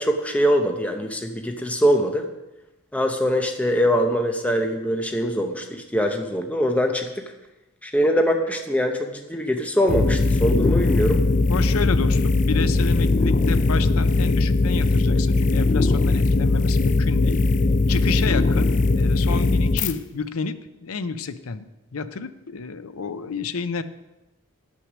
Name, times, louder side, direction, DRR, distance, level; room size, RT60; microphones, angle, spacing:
voice 1, 0.0-2.2 2.9-7.2 7.8-11.2, equal, 5° left, 4 dB, 0.7 m, -23 dB
sound 1, 9.9-19.9, left 3 dB, 35° left, 0.4 m, -20 dB
voice 2, 11.5-17.4 17.9-23.8, left 5 dB, 90° left, 12 dB, 0.6 m, -30 dB
9.7 x 6.2 x 6.1 m, 0.99 s
head